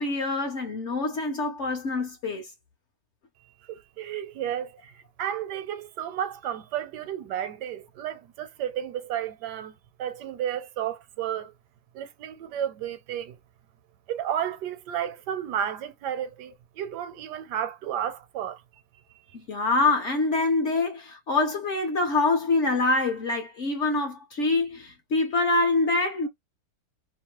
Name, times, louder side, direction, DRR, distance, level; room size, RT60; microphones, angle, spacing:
voice 1, 0.0-2.5 19.3-26.3, left 3 dB, 55° left, 0.8 m, -25 dB
voice 2, 3.4-11.5 11.9-13.4 14.1-18.6 19.1-19.4, right 10 dB, 80° right, 1.2 m, -32 dB
2.8 x 2.0 x 2.9 m
omnidirectional pair, 1.8 m